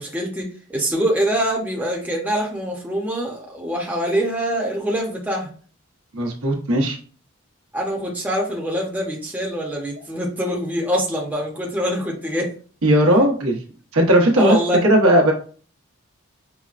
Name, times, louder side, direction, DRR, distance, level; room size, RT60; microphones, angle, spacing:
voice 1, 0.0-5.5 7.7-12.5 14.4-14.8, equal, 10° right, -2 dB, 0.7 m, -24 dB
voice 2, 6.1-7.0 12.8-13.6 13.9-14.6 14.8-15.3, right 1 dB, 85° right, 0 dB, 1.0 m, -16 dB
5.8 x 2.1 x 2.4 m, 0.41 s
head